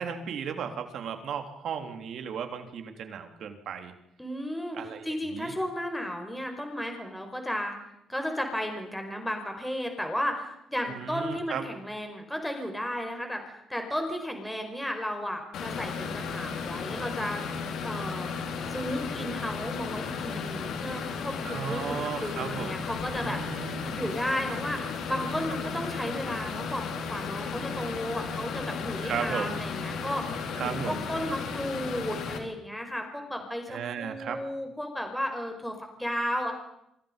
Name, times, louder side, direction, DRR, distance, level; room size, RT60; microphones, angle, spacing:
voice 1, 0.0-3.9 4.7-5.5 10.9-11.6 21.4-22.8 23.2-24.0 29.0-29.5 30.6-31.0 33.7-34.4, right 7 dB, 70° right, 6 dB, 3.5 m, -35 dB
voice 2, 4.2-4.8 5.0-7.7 8.1-17.4 17.8-18.3 18.7-36.5, equal, 5° left, 4 dB, 5.0 m, -34 dB
sound 1, 15.5-32.4, left 5 dB, 80° left, 4.1 m, -34 dB
28.0 x 26.5 x 5.3 m, 0.80 s
cardioid pair, 90°, 0 cm